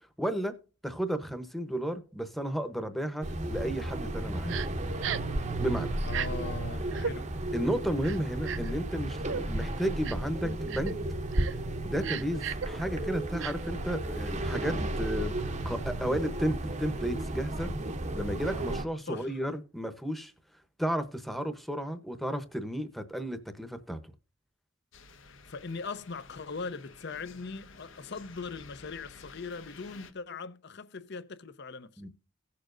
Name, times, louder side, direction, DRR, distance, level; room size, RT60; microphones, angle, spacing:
voice 1, 0.2-0.5 0.8-4.7 5.6-6.0 7.5-11.0 11.8-17.7 18.1-20.3 20.8-24.0 32.0-32.1, equal, ahead, 0.9 m, -33 dB
sound 1, 3.2-18.9, right 1 dB, 35° right, 0.8 m, -33 dB
Crying sobbing, 4.5-4.7 5.0-5.3 6.1-6.3 6.9-7.1 8.0-8.7 9.3-9.4 10.0-10.3 10.7-10.9 11.3-11.5 12.0-12.7 13.4-13.5, right 8 dB, 65° right, 0.4 m, -35 dB
voice 2, 6.0-7.3 19.1-19.4 25.5-31.9, left 4 dB, 60° left, 0.7 m, -40 dB
sound 2, 24.9-30.1, left 4 dB, 75° left, 1.0 m, -52 dB
17.0 x 6.8 x 2.6 m
head